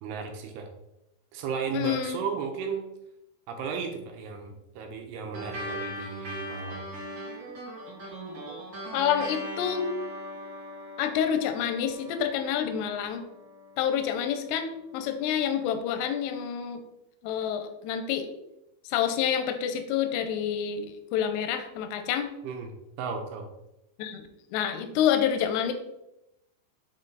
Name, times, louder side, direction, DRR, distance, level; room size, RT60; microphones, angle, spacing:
voice 1, 0.0-0.7 1.3-2.8 3.5-6.9 22.4-22.7 23.0-23.5, right 6 dB, 75° right, 3 dB, 2.7 m, -34 dB
voice 2, 1.7-2.2 8.9-9.9 11.0-13.2 13.8-16.8 17.2-18.3 18.9-20.9 21.1-22.3 24.0-25.7, left 9 dB, 85° left, 7 dB, 2.7 m, -28 dB
sound 1, 5.3-14.2, equal, 35° right, 2.8 m, -40 dB
7.4 x 4.2 x 3.9 m, 0.88 s
omnidirectional pair, 5.1 m